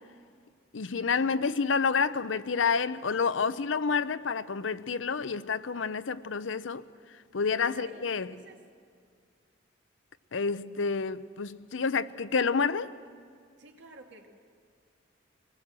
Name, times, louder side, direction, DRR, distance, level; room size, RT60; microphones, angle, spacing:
voice 1, 0.7-6.8 7.3-8.3 10.3-12.9, left 5 dB, 75° left, 0.7 m, -29 dB
voice 2, 7.4-8.6 13.6-14.3, right 1 dB, 65° right, 2.3 m, -50 dB
25.0 x 20.0 x 7.6 m
head